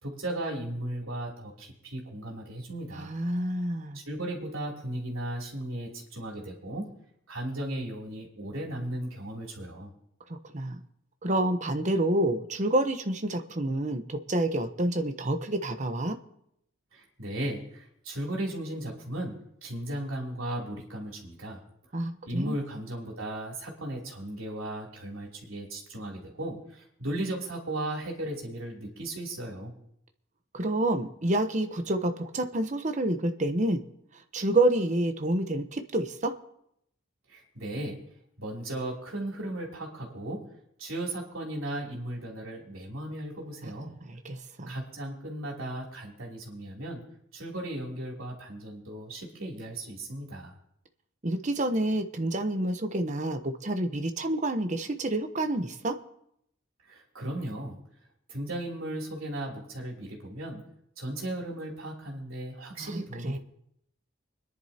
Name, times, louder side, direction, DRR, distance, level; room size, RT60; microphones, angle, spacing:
voice 1, 0.0-3.1 3.9-6.9 7.3-9.9 16.9-19.3 19.6-21.6 22.3-29.7 37.3-38.0 38.4-40.5 40.8-43.9 44.7-47.0 47.3-50.5 56.9-57.8 58.3-60.6 61.0-63.4, right 1 dB, 85° right, -1 dB, 3.3 m, -36 dB
voice 2, 2.9-4.0 10.5-10.8 11.2-16.2 21.9-22.6 30.5-33.8 34.3-36.3 43.6-43.7 44.0-44.8 51.2-55.9 62.8-63.4, right 1 dB, 35° right, 7 dB, 0.9 m, -28 dB
25.0 x 10.5 x 2.9 m, 0.75 s
head